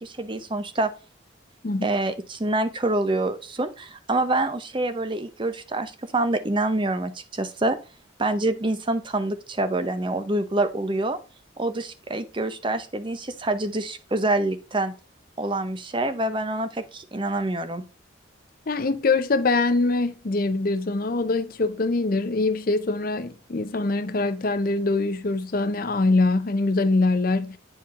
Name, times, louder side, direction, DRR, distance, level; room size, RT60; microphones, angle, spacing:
voice 1, 0.0-0.9 1.8-7.8 8.2-11.2 11.6-14.9 15.4-17.8, right 2 dB, 25° right, 0.6 m, -26 dB
voice 2, 18.7-27.6, left 3 dB, 45° left, 0.6 m, -23 dB
8.7 x 4.7 x 3.6 m
head